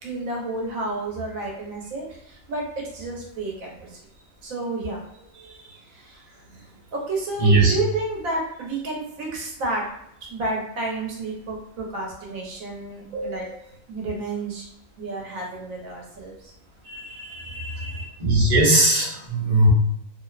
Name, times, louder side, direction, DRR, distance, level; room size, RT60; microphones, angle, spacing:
voice 1, 0.0-4.0 4.4-5.0 5.3-6.4 6.9-9.8 10.3-13.5 13.9-14.7 15.0-16.5 16.8-18.0, right 2 dB, 85° right, -1 dB, 1.1 m, -31 dB
voice 2, 7.4-7.7 13.1-13.5 18.2-19.7, right 2 dB, 35° right, -6 dB, 0.7 m, -18 dB
2.7 x 2.0 x 2.3 m, 0.74 s
omnidirectional pair, 1.4 m